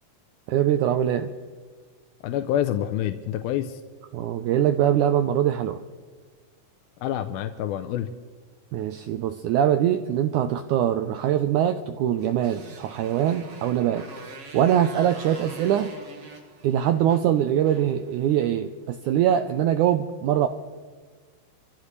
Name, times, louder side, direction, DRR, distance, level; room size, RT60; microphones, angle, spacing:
voice 1, 0.5-1.3 4.1-5.8 8.7-14.0 14.5-15.9 16.6-20.5, right 10 dB, 85° right, 8 dB, 1.7 m, -23 dB
voice 2, 2.2-3.8 7.0-8.1, left 11 dB, 85° left, 7 dB, 2.4 m, -27 dB
Motorcycle, 12.1-18.7, right 3 dB, 50° right, 2.2 m, -45 dB
26.0 x 15.0 x 3.2 m, 1.5 s
omnidirectional pair, 4.2 m